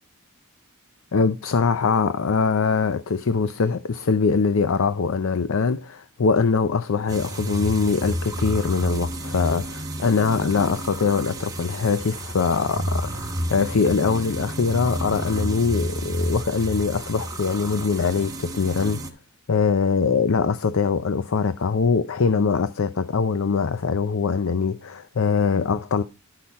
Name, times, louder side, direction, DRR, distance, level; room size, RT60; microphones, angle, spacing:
voice 1, 1.1-19.0 19.5-26.0, left 5 dB, 65° left, 0.5 m, -22 dB
sound 1, 7.1-19.1, right 1 dB, 15° right, 1.0 m, -30 dB
10.5 x 5.7 x 4.1 m
head